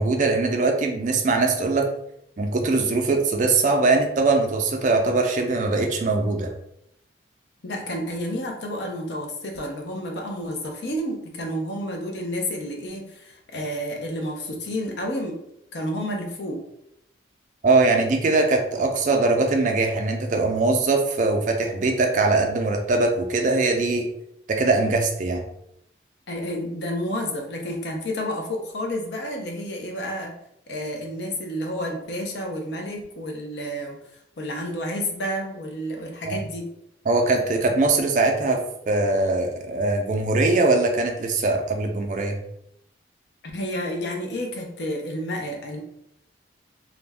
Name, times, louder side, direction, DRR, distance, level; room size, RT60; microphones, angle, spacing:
voice 1, 0.0-1.9 2.4-6.5 17.6-24.1 24.5-25.4 36.3-36.4 37.1-38.6 38.9-42.4, right 3 dB, 40° right, 3 dB, 0.4 m, -21 dB
voice 2, 7.6-15.4 15.7-16.6 26.3-30.3 30.7-36.7 43.5-45.8, equal, 65° left, 2 dB, 0.6 m, -30 dB
2.4 x 2.1 x 3.3 m, 0.77 s
head